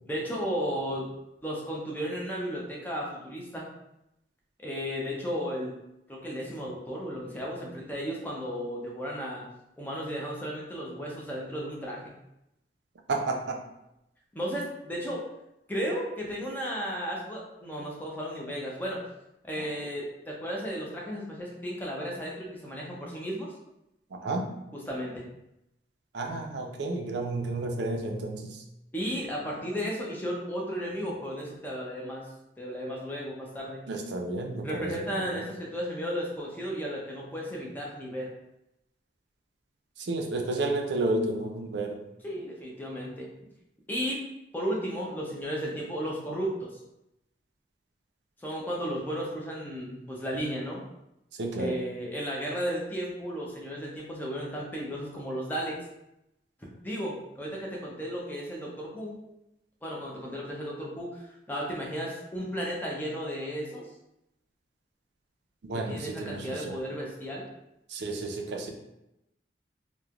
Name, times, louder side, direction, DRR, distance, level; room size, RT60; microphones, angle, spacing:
voice 1, 0.1-1.1 1.4-3.7 4.6-5.7 6.1-9.4 9.8-12.0 14.3-15.2 15.7-19.0 19.4-23.5 24.7-25.1 28.9-32.3 32.6-33.8 34.6-38.3 42.2-43.3 43.9-44.2 44.5-46.7 48.4-50.8 51.6-55.8 56.8-59.2 59.8-63.9 65.7-67.5, equal, 10° left, -3 dB, 0.5 m, -34 dB
voice 2, 13.1-13.6 19.6-19.7 24.1-24.5 26.1-28.6 33.9-35.4 40.0-42.0 51.4-51.8 65.6-66.8 67.9-68.7, right 2 dB, 70° right, 2 dB, 0.4 m, -31 dB
3.0 x 2.1 x 2.4 m, 0.86 s
head